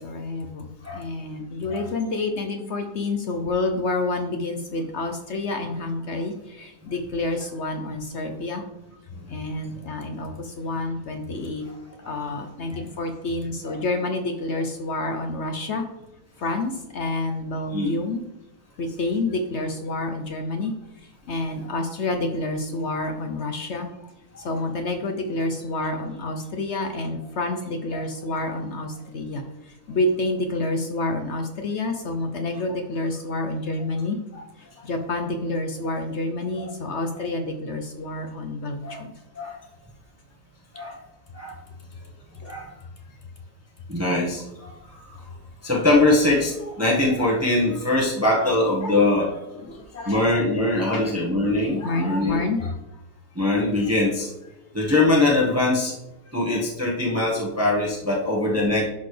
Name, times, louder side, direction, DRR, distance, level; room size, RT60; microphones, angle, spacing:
voice 1, 0.0-8.6 9.3-11.6 12.1-15.9 16.4-18.2 18.8-20.7 21.3-23.9 24.3-34.2 34.8-39.1 42.4-42.5 47.9-48.1 48.3-48.9 49.5-50.3 50.9-51.1 51.8-52.6 57.2-57.3, left 2 dB, 60° left, 5 dB, 0.8 m, -28 dB
voice 2, 43.9-44.7 45.1-45.2 45.6-49.3 50.0-52.7 53.3-54.3 54.7-55.9 56.3-58.9, left 2 dB, 10° right, -4 dB, 1.1 m, -22 dB
11.0 x 4.2 x 3.3 m, 0.94 s
omnidirectional pair, 1.7 m